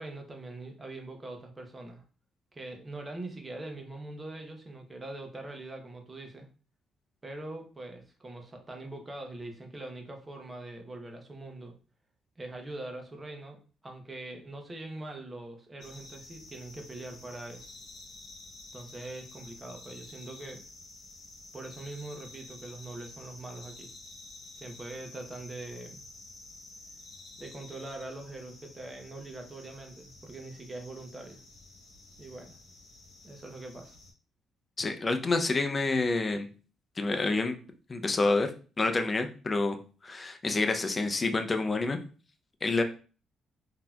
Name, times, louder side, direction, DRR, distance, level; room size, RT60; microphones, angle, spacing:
voice 1, 0.0-2.0 2.5-6.5 7.2-11.7 12.4-17.7 18.7-20.6 21.5-23.9 24.6-26.0 27.4-31.4 32.2-32.6 33.2-34.0, right 2 dB, 25° right, 3 dB, 0.8 m, -43 dB
sound 1, 15.8-34.1, left 2 dB, 70° left, 1.1 m, -50 dB
voice 2, 34.8-36.5 37.0-37.6 37.9-38.5 38.8-39.8 40.0-42.0 42.6-42.8, left 3 dB, 30° left, 6 dB, 0.5 m, -28 dB
3.8 x 2.8 x 2.3 m, 0.37 s
cardioid pair, 90°, 0 cm